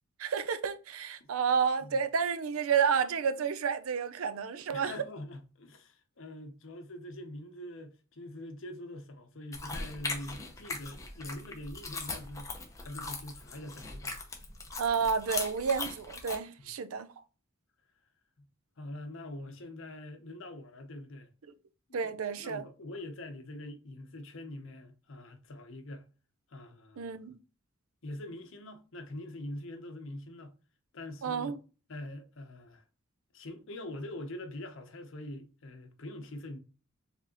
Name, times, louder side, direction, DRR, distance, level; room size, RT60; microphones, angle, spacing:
voice 1, 0.2-4.9 14.8-17.1 21.9-22.6 27.0-27.4 31.2-31.6, right 6 dB, 90° right, 0.5 m, -30 dB
voice 2, 4.7-12.5 12.8-14.2 16.6-16.7 18.4-18.5 18.8-21.3 21.9-26.1 26.5-27.1 28.0-30.6 30.9-31.6 31.9-32.8 33.3-36.6, left 1 dB, 65° left, 0.7 m, -44 dB
sound 1, 9.5-16.4, left 3 dB, 15° left, 0.7 m, -40 dB
4.7 x 3.4 x 2.9 m
head